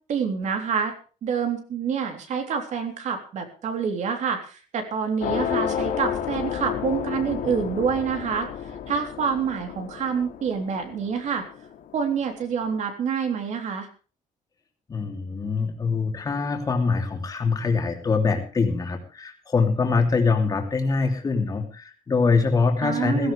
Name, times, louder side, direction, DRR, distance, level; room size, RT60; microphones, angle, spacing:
voice 1, 0.1-0.9 1.2-8.5 8.9-11.4 11.9-13.9 22.8-23.3, right 6 dB, 55° right, 5 dB, 3.5 m, -27 dB
sound 1, 5.2-12.0, left 9 dB, 90° left, 2.7 m, -31 dB
voice 2, 14.9-23.3, left 4 dB, 25° left, 2 dB, 3.0 m, -24 dB
17.0 x 16.5 x 3.4 m, 0.37 s
cardioid pair, 175°, 14 cm